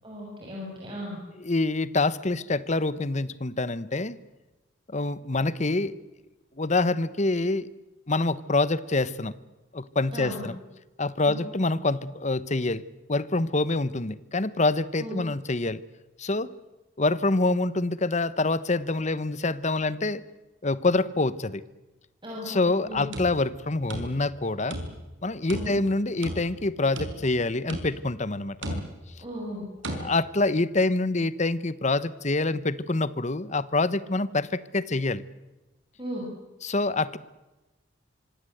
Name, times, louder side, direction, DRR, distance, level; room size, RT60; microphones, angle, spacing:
voice 1, 0.0-1.2 10.1-10.5 11.3-11.4 15.0-15.2 22.2-23.1 25.5-25.7 29.2-29.6 36.0-36.2, equal, 25° right, -3 dB, 6.7 m, -36 dB
voice 2, 1.4-4.2 4.9-5.9 6.6-7.7 8.1-9.3 9.7-10.6 11.0-12.8 13.1-15.8 16.2-16.5 17.0-20.2 20.6-21.6 22.5-24.8 25.2-28.8 30.0-35.2 36.6-37.2, left 2 dB, 35° left, 16 dB, 1.1 m, -26 dB
sound 1, 22.9-24.4 24.7-25.2 25.5-26.6 27.0-27.4 27.7-28.2 28.6-29.1 29.8-30.1, right 1 dB, 70° right, 5.4 m, -35 dB
25.5 x 25.5 x 8.0 m, 1.1 s
head